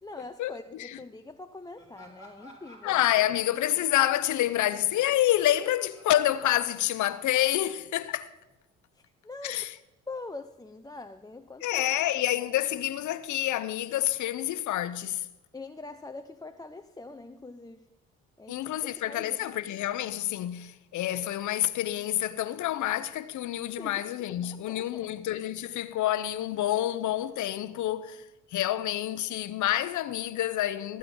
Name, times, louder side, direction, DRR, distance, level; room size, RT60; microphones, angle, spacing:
voice 1, 0.0-3.0 8.9-9.6 10.1-11.8 12.3-12.5 15.5-17.9 18.4-18.6 19.1-19.5 23.8-24.0 24.4-25.1, left 3 dB, 10° left, 0.6 m, -43 dB
Laughter, 1.8-7.2, equal, 20° right, 4.3 m, -55 dB
voice 2, 2.8-8.3 9.4-9.7 11.6-15.2 18.5-28.2 28.5-31.0, left 13 dB, 60° left, 0.8 m, -28 dB
18.5 x 8.7 x 3.9 m
hypercardioid pair, 55°, 34 cm